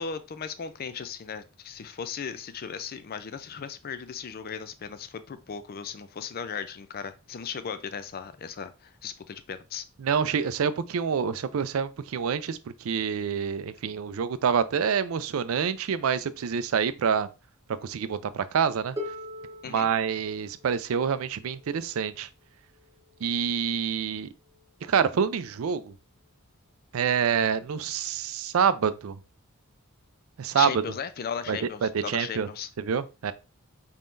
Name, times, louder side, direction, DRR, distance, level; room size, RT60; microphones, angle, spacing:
voice 1, 0.0-9.8 19.6-19.9 30.6-32.7, left 6 dB, 45° left, 0.4 m, -36 dB
voice 2, 10.0-12.6 12.8-17.3 17.8-19.0 19.7-22.3 23.2-24.3 24.9-25.9 26.9-29.2 30.4-30.8 31.5-32.5 32.8-33.3, right 7 dB, 85° right, 0.4 m, -27 dB
Harp, 19.0-24.8 25.8-25.9, left 1 dB, 15° right, 1.0 m, -44 dB
4.4 x 3.6 x 2.5 m
head